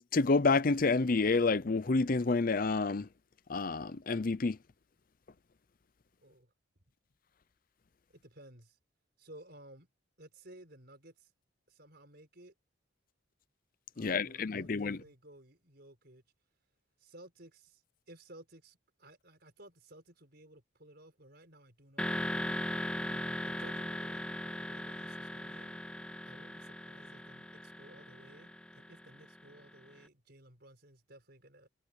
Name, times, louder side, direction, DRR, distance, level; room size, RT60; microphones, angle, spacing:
voice 1, 0.0-3.1 3.5-4.6 14.0-15.0, left 3 dB, 45° left, 0.6 m, -29 dB
voice 2, 6.2-6.5 8.1-8.8 9.2-9.9 10.2-11.3 11.7-12.5 13.9-16.2 17.0-17.8 18.1-22.4 23.0-25.8 26.3-31.7, right 1 dB, 50° right, 6.1 m, -56 dB
sound 1, 22.0-29.8, left 1 dB, 5° left, 1.8 m, -39 dB
head